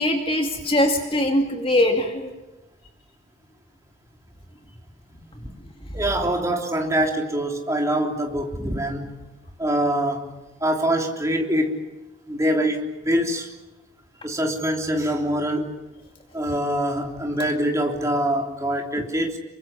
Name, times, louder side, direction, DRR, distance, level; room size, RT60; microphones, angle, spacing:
voice 1, 0.0-2.3 5.8-5.9, left 1 dB, 25° left, 3 dB, 2.4 m, -22 dB
voice 2, 5.9-9.2 9.6-10.3 10.6-11.7 12.3-13.5 14.2-15.7 16.3-19.4, right 1 dB, 15° right, 2 dB, 3.4 m, -24 dB
27.5 x 24.0 x 7.3 m, 1.0 s
head